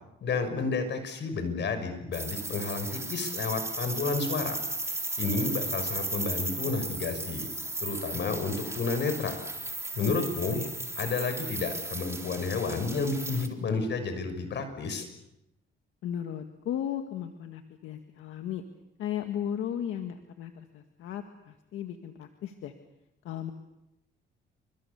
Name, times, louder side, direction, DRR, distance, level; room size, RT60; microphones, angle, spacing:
voice 1, 0.2-4.6 4.9-7.5 7.8-9.4 10.0-10.6 11.0-15.1, left 4 dB, 60° left, 8 dB, 6.5 m, -31 dB
sound 1, 2.1-13.5, right 2 dB, 15° right, 3.5 m, -35 dB
voice 2, 10.0-10.7 16.0-18.6 19.0-22.7 23.2-23.5, left 10 dB, 85° left, 6 dB, 1.9 m, -35 dB
29.0 x 26.0 x 7.1 m, 0.88 s
cardioid pair, 90°, 20 cm